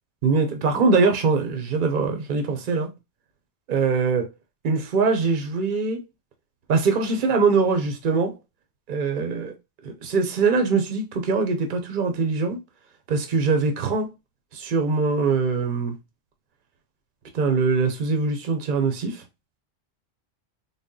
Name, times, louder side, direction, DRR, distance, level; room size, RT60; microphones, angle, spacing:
voice 1, 0.2-2.9 3.7-4.3 4.6-6.0 6.7-8.3 8.9-9.5 9.8-12.6 13.1-14.1 14.5-15.9 17.3-19.2, right 4 dB, 55° right, 0.8 m, -22 dB
4.0 x 2.0 x 3.6 m
omnidirectional pair, 1.1 m